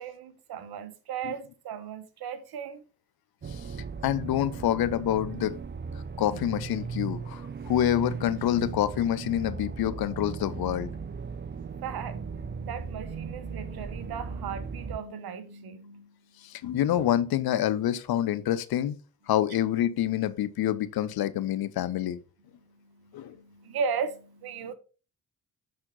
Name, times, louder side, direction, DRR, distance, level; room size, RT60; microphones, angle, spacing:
voice 1, 0.0-2.8 11.6-16.1 22.7-24.7, right 6 dB, 60° right, 1.2 m, -36 dB
sound 1, 3.4-15.0, right 5 dB, 25° right, 0.7 m, -37 dB
voice 2, 4.0-5.6 6.2-10.9 16.4-19.0 19.3-22.2 23.1-23.4, left 11 dB, 60° left, 0.8 m, -27 dB
10.0 x 4.4 x 3.9 m
hypercardioid pair, 40°, 42 cm